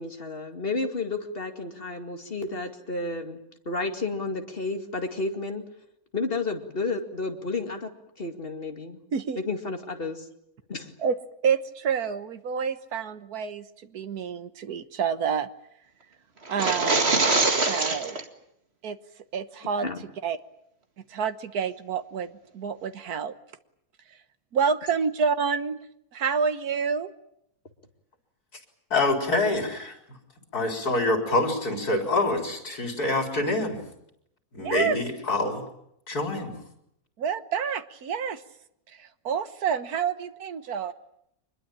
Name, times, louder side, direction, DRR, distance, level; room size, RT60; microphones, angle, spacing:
voice 1, 0.0-3.4 3.7-5.6 6.1-7.9 8.2-9.0 9.4-10.3 10.7-10.9 19.8-20.0, left 3 dB, 40° left, 6 dB, 2.5 m, -31 dB
voice 2, 11.4-15.5 16.5-17.2 17.6-18.2 18.8-19.0 19.3-19.9 20.2-20.4 21.1-22.3 22.5-23.3 24.5-25.8 26.1-27.1 34.5-35.0 37.2-38.4 38.9-40.9, right 6 dB, 75° right, 11 dB, 1.7 m, -28 dB
sound 1, 16.5-18.2, right 3 dB, 45° right, 2.3 m, -23 dB
voice 3, 28.9-30.0 30.5-33.8 34.5-35.7 36.1-36.5, left 2 dB, 90° left, 4 dB, 4.5 m, -26 dB
25.0 x 21.5 x 8.9 m, 0.76 s
omnidirectional pair, 1.6 m